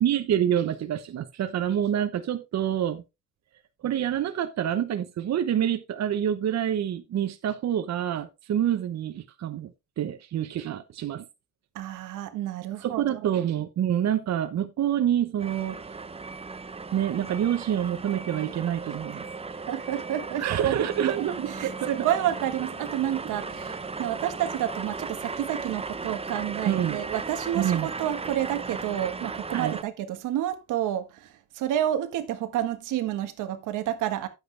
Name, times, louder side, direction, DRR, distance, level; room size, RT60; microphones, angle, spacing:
voice 1, 0.0-3.0 3.8-9.7 10.0-11.2 12.8-15.8 16.9-19.2 20.4-21.9 26.7-27.0 27.5-27.9 29.5-29.8, right 10 dB, 60° right, 1.0 m, -27 dB
voice 2, 11.7-13.3 19.5-21.3 21.6-34.3, right 12 dB, 90° right, 1.5 m, -30 dB
sound 1, 15.4-29.8, right 4 dB, 20° right, 0.8 m, -36 dB
sound 2, 21.3-28.4, left 7 dB, 60° left, 4.8 m, -53 dB
10.0 x 8.1 x 3.4 m
cardioid pair, 90°, 30 cm